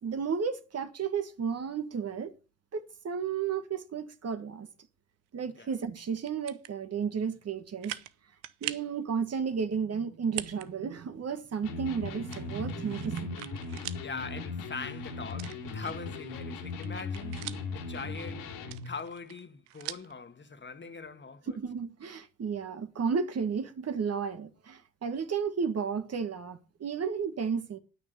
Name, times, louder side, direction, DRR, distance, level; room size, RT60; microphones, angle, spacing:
voice 1, 0.0-2.3 2.7-4.7 5.3-8.0 8.6-13.5 21.6-27.8, right 6 dB, 45° right, 1.7 m, -33 dB
sound 1, 6.2-6.7 7.3-7.4 7.8-8.1 8.4-8.9 10.2-10.7 11.0-11.1 12.3-14.1 14.4-14.5 15.3-16.2 16.6-17.8 18.6-20.1, right 16 dB, 85° right, 0.8 m, -41 dB
Electric guitar, 11.6-18.9, left 4 dB, 80° left, 3.8 m, -38 dB
voice 2, 14.0-21.6, left 4 dB, 30° left, 1.7 m, -42 dB
9.5 x 9.3 x 6.8 m
hypercardioid pair, 55°, 35 cm